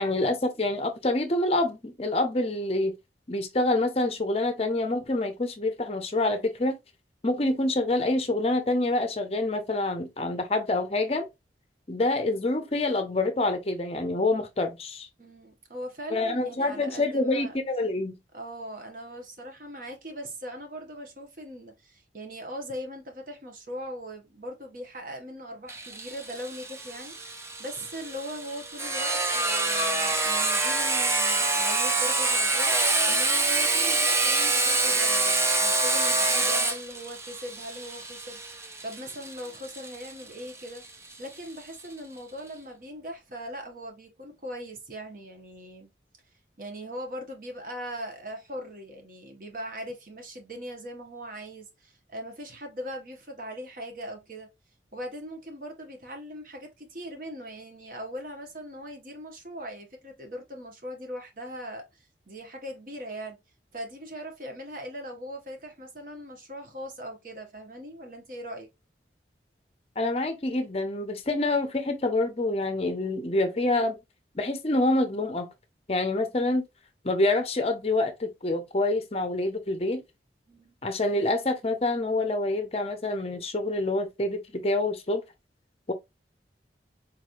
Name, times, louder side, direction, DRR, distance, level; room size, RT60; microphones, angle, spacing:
voice 1, 0.0-3.0 3.3-6.8 7.2-11.3 11.9-15.1 16.1-18.2 70.0-74.0 74.3-75.5 75.9-76.6 77.0-80.0 80.8-85.2 85.9-86.0, left 2 dB, 35° left, 0.5 m, -26 dB
voice 2, 15.2-17.6 18.3-45.9 46.6-54.5 54.9-63.4 63.7-68.7 80.5-80.7, equal, 50° right, 1.1 m, -40 dB
Sawing, 25.7-41.1, right 2 dB, 15° right, 0.4 m, -26 dB
4.0 x 3.1 x 2.5 m
head